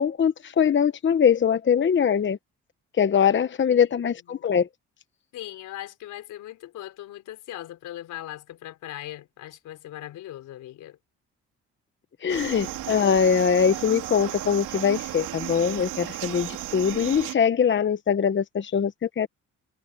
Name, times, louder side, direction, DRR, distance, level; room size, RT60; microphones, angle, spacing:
voice 1, 0.0-2.4 3.0-4.7 12.2-19.3, left 7 dB, 40° left, 1.0 m, -22 dB
voice 2, 5.3-11.0, left 13 dB, 85° left, 4.2 m, -39 dB
sound 1, 12.3-17.4, right 14 dB, 85° right, 2.9 m, -34 dB
cardioid pair, 90°, 30 cm